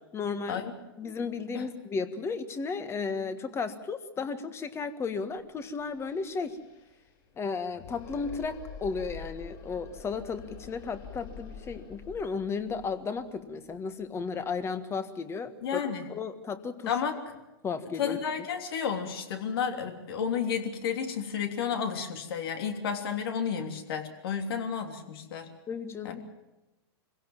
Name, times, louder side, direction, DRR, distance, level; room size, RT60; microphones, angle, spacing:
voice 1, 0.1-0.7 1.0-6.6 7.4-16.9 17.6-18.2 25.7-26.2, left 5 dB, 20° left, 11 dB, 1.7 m, -34 dB
sound 1, 5.4-5.5 5.7-14.5, left 6 dB, 45° left, 7.9 m, -47 dB
voice 2, 15.6-16.0 16.9-17.2 18.0-25.5 26.0-26.2, left 7 dB, 70° left, 5 dB, 3.3 m, -32 dB
24.5 x 17.0 x 7.4 m, 1.0 s
hypercardioid pair, 125°, 13 cm